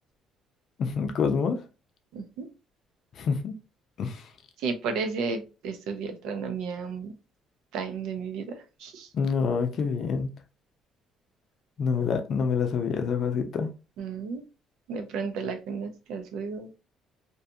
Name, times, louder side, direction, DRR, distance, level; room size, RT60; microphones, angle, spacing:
voice 1, 0.8-1.6 3.2-3.5 4.0-4.3 9.1-10.3 11.8-13.7, left 5 dB, 50° left, 0.5 m, -27 dB
voice 2, 2.1-2.5 4.6-7.1 7.7-9.1 14.0-14.4 14.9-16.7, right 5 dB, 80° right, 0.5 m, -33 dB
2.6 x 2.3 x 2.6 m
cardioid pair, 140°, 0 cm